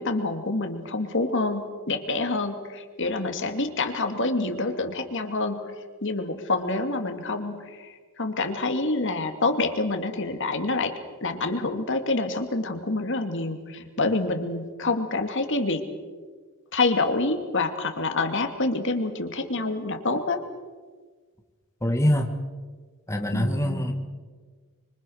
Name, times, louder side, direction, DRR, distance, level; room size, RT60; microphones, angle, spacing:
voice 1, 0.0-5.6 6.0-10.9 11.2-15.8 16.7-20.4 23.3-23.9, left 3 dB, 60° left, 6 dB, 2.4 m, -27 dB
voice 2, 21.8-22.3 23.1-23.9, equal, 15° left, 3 dB, 1.6 m, -24 dB
25.5 x 25.0 x 6.4 m, 1.4 s
head